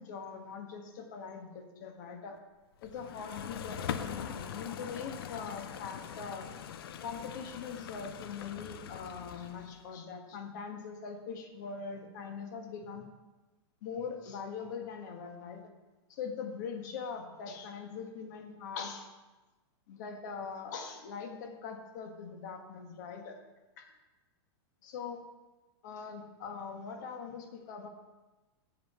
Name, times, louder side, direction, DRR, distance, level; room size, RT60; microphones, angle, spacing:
voice 1, 0.0-2.4 2.8-6.5 7.0-13.1 13.8-15.6 16.1-19.1 19.9-23.4 23.8-23.9 24.8-25.2 25.8-27.9, left 6 dB, 40° left, 4 dB, 1.5 m, -42 dB
sound 1, 2.8-9.8, left 8 dB, 55° left, 0.7 m, -42 dB
7.6 x 7.5 x 6.9 m, 1.1 s
supercardioid pair, 180°, 14 cm